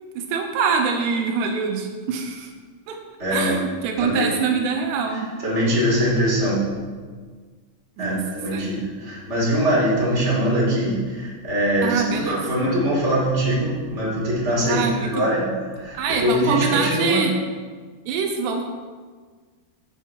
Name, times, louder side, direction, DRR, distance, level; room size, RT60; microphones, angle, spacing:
voice 1, 0.2-2.5 2.9-3.0 3.3-5.3 8.0-8.2 8.5-8.8 11.8-12.4 14.6-15.4 15.9-17.3 18.1-18.6, right 5 dB, 80° right, 3 dB, 2.8 m, -24 dB
voice 2, 3.2-3.6 4.0-4.3 5.1-6.7 8.0-17.3, equal, 20° right, -6 dB, 1.9 m, -22 dB
9.1 x 7.3 x 4.4 m, 1.5 s
omnidirectional pair, 5.1 m